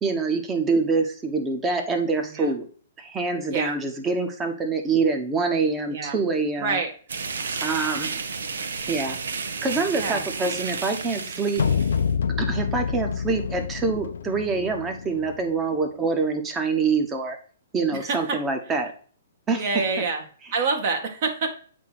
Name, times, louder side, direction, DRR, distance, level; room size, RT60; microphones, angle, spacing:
voice 1, 0.0-2.7 3.0-6.8 7.6-8.2 8.9-9.2 9.6-11.6 12.4-17.4 17.7-18.9 19.5-19.6, right 4 dB, 15° right, 5 dB, 1.2 m, -25 dB
sound 1, 7.1-12.1, right 5 dB, 80° right, 0.9 m, -32 dB
voice 2, 9.9-10.2 17.9-18.4 19.6-20.2 20.5-21.5, right 4 dB, 45° right, 3 dB, 1.9 m, -26 dB
sound 2, 11.6-15.6, left 6 dB, 75° left, 0.5 m, -27 dB
8.2 x 3.0 x 6.0 m, 0.44 s
hypercardioid pair, 150°, 0 cm